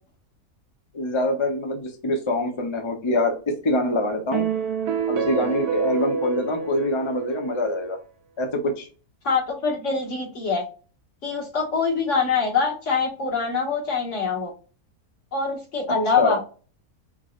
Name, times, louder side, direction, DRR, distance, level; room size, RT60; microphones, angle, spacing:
voice 1, 0.9-4.5 5.1-8.0 8.4-8.9 16.2-16.4, left 1 dB, 35° left, 3 dB, 0.5 m, -25 dB
sound 1, 4.3-7.8, right 6 dB, 80° right, 1.2 m, -27 dB
voice 2, 9.2-10.6 11.2-14.5 15.3-16.4, left 5 dB, 50° left, -3 dB, 1.9 m, -24 dB
4.7 x 3.1 x 2.4 m, 0.37 s
omnidirectional pair, 1.6 m